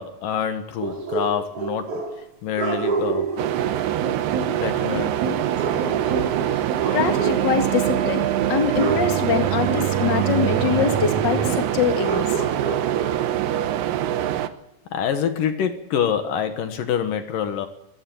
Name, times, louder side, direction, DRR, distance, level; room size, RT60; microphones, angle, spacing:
voice 1, 0.0-2.0 2.4-3.3 4.6-5.4 14.9-17.7, left 8 dB, 70° left, 3.0 m, -26 dB
sound 1, 0.8-2.3 2.6-3.8 5.6-7.6 7.8-8.2 8.8-9.2 12.0-13.3, right 5 dB, 45° right, 3.3 m, -28 dB
sound 2, 3.4-14.5, right 11 dB, 75° right, 2.6 m, -24 dB
sound 3, 3.5-11.6, right 8 dB, 60° right, 2.7 m, -28 dB
voice 2, 6.9-8.2 8.5-12.3, left 6 dB, 40° left, 2.1 m, -23 dB
24.0 x 15.5 x 7.8 m
omnidirectional pair, 4.1 m